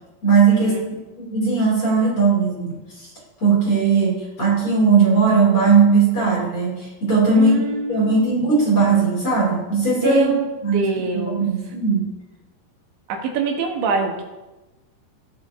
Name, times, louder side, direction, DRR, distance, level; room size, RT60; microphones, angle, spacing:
voice 1, 0.2-0.8 1.2-3.1 3.4-7.6 7.9-10.3 10.6-10.9 11.1-12.1, right 4 dB, 35° left, -5 dB, 3.4 m, -18 dB
voice 2, 7.3-8.5 9.9-11.5 13.1-14.2, right 5 dB, 80° right, 1 dB, 3.6 m, -24 dB
17.5 x 6.2 x 3.6 m, 1.1 s
omnidirectional pair, 5.2 m